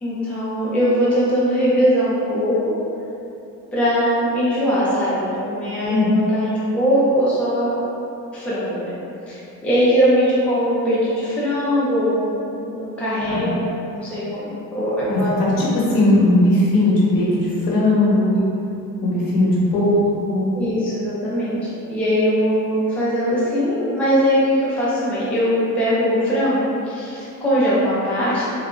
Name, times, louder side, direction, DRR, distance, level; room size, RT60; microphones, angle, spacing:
voice 1, 0.0-2.7 3.7-7.8 8.3-9.0 9.3-13.6 13.9-15.3 18.3-18.4 20.5-28.5, equal, 5° left, -9 dB, 0.3 m, -21 dB
voice 2, 5.9-6.2 13.3-13.5 15.1-18.3 19.0-20.5, left 1 dB, 85° left, -6 dB, 0.8 m, -18 dB
2.8 x 2.3 x 2.3 m, 2.7 s
cardioid pair, 175°, 32 cm